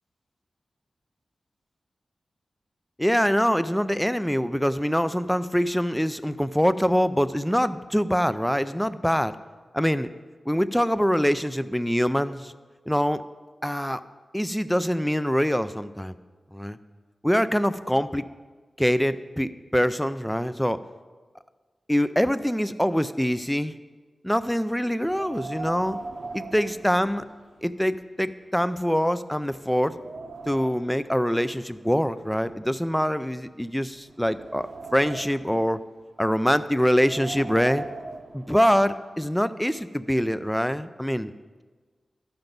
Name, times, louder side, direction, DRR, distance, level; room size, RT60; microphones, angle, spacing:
voice 1, 3.0-9.4 9.7-10.1 10.5-12.5 12.9-13.2 13.6-14.0 14.3-16.1 16.5-16.8 17.2-18.3 18.8-20.8 21.9-23.7 24.2-26.0 26.3-27.2 27.6-30.0 30.5-35.8 36.2-37.9 38.3-41.3, equal, 5° left, 13 dB, 0.4 m, -24 dB
Wind, 25.0-27.6 28.0-28.1 28.8-28.9 29.3-31.0 31.8-33.3 33.9-35.5 36.8-38.9, right 3 dB, 65° right, 0.8 m, -40 dB
12.5 x 5.9 x 5.2 m, 1.4 s
wide cardioid pair, 95°, 0 cm